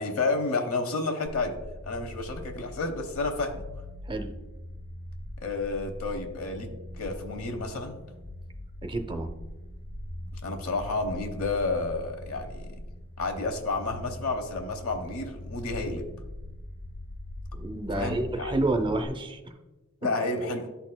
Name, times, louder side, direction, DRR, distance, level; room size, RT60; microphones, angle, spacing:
voice 1, 0.0-1.6 1.8-3.6 5.4-8.1 10.4-12.7 13.2-16.1 17.9-18.5 20.0-20.7, left 3 dB, 80° left, 5 dB, 0.9 m, -31 dB
sound 1, 1.3-19.1, left 1 dB, 30° left, 0.5 m, -41 dB
voice 2, 8.8-9.3 17.5-19.4, right 2 dB, 25° right, 7 dB, 0.5 m, -29 dB
12.0 x 4.1 x 2.2 m, 1.1 s
head